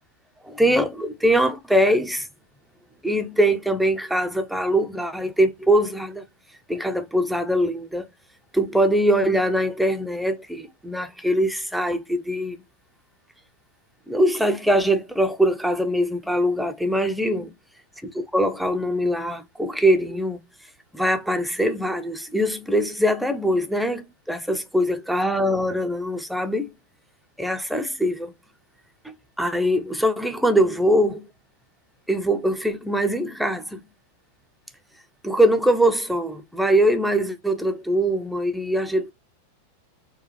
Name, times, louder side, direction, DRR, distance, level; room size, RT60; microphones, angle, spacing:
voice 1, 0.4-2.3 3.0-6.2 6.7-8.1 8.5-12.6 14.1-17.5 18.0-20.4 20.9-26.7 27.4-28.3 29.0-31.3 32.1-33.8 35.2-39.1, equal, ahead, 0.6 m, -22 dB
4.6 x 2.2 x 3.1 m
figure-of-eight pair, 90°, 0 cm